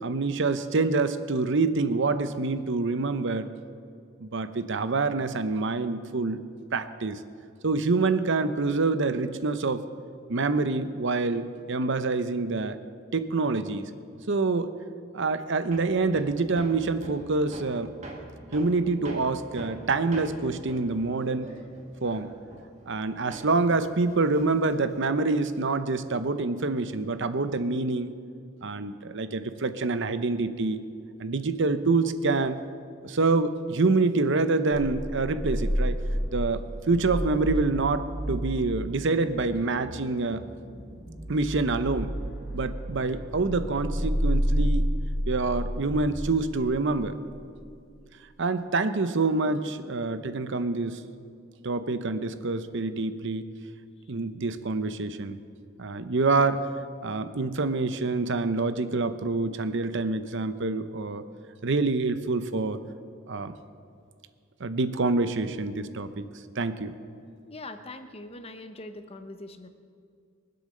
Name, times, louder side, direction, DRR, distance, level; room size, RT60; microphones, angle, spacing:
voice 1, 0.0-3.5 4.2-6.4 6.7-7.2 7.6-9.8 10.3-12.8 13.1-13.9 14.3-14.7 15.1-17.9 18.5-21.5 22.0-22.3 22.9-28.1 28.6-30.8 31.2-32.6 33.0-36.0 36.3-40.5 41.3-42.1 42.5-44.9 45.3-47.1 48.4-51.0 51.6-53.5 54.1-55.4 55.8-56.7 57.0-61.2 61.6-62.8 63.3-63.6 64.6-66.3 66.6-66.9, right 3 dB, 55° right, 12 dB, 0.7 m, -26 dB
Hammer, 15.7-23.0 23.3-25.1, right 1 dB, 35° right, 1.8 m, -44 dB
sound 1, 34.7-47.3, equal, ahead, 2.6 m, -31 dB
voice 2, 67.5-69.7, left 2 dB, 30° left, 8 dB, 0.9 m, -42 dB
23.0 x 8.0 x 6.5 m, 2.3 s
head